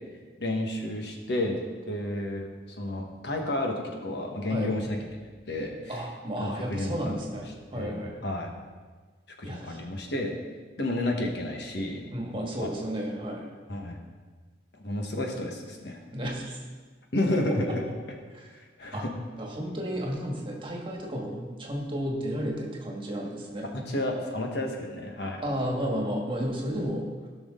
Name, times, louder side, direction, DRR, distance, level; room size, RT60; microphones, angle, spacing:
voice 1, 0.4-2.5 2.8-5.0 5.5-6.0 6.4-7.2 7.7-8.5 9.4-10.3 10.8-12.0 12.3-12.8 13.7-14.0 14.8-16.0 17.1-17.8 18.5-19.1 23.7-25.4, left 1 dB, 65° left, 1 dB, 1.4 m, -31 dB
voice 2, 5.9-7.4 7.7-8.1 9.4-9.8 12.1-13.5 16.1-16.6 18.3-18.5 18.9-19.0 19.4-23.7 25.4-27.0, equal, 30° right, -1 dB, 1.7 m, -32 dB
16.5 x 6.2 x 3.8 m, 1.4 s
head